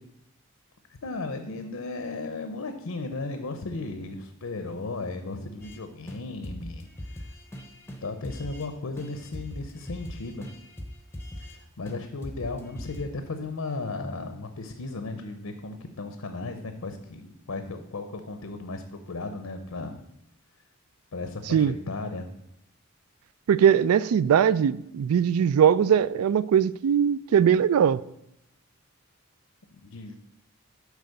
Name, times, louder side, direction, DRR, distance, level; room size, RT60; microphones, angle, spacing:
voice 1, 1.0-7.4 8.0-10.5 11.4-20.0 21.1-22.3 29.8-30.2, left 3 dB, 85° left, 7 dB, 0.7 m, -35 dB
sound 1, 5.6-5.8 6.1-6.2 6.4-8.7 9.0-11.6 11.9-12.0 12.2-13.0, left 1 dB, 10° left, 0.7 m, -40 dB
voice 2, 23.5-28.0, right 8 dB, 85° right, 19 dB, 0.3 m, -21 dB
8.2 x 4.7 x 6.5 m, 0.80 s
head